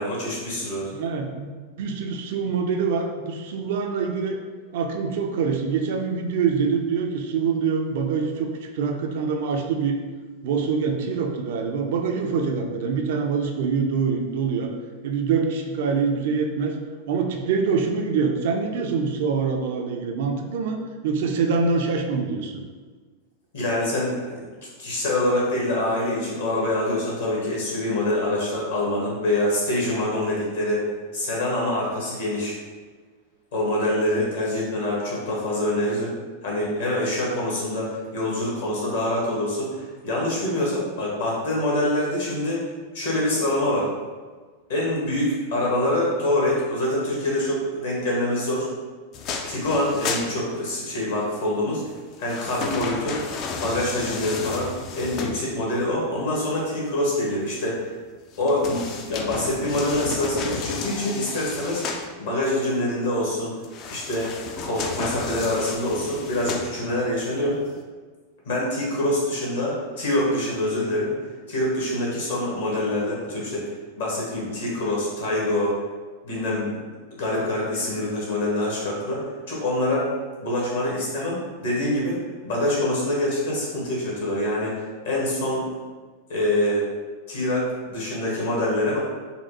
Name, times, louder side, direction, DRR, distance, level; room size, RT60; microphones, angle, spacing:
voice 1, 0.0-0.9 23.5-24.4 24.8-30.8 31.1-32.6 33.5-36.1 36.4-42.6 42.9-43.9 44.7-48.7 49.5-51.8 52.2-53.2 53.5-57.9 58.4-61.8 62.2-63.5 63.9-64.3 64.6-67.6 68.5-71.1 71.5-73.7 73.9-75.7 76.2-76.7 77.2-79.2 79.5-80.1 80.4-82.2 82.4-85.7 86.3-86.8 87.3-89.0, left 1 dB, 60° left, -4 dB, 1.2 m, -25 dB
voice 2, 0.9-1.5 1.8-4.4 4.7-10.0 10.4-14.7 15.0-16.8 17.1-22.6, right 5 dB, 55° right, 3 dB, 0.4 m, -25 dB
sound 1, 49.1-51.0 51.9-55.8 58.3-62.1 63.6-67.1 67.6-67.7, left 4 dB, 40° left, 0.3 m, -33 dB
4.1 x 2.2 x 2.7 m, 1.4 s
figure-of-eight pair, 90°, 0 cm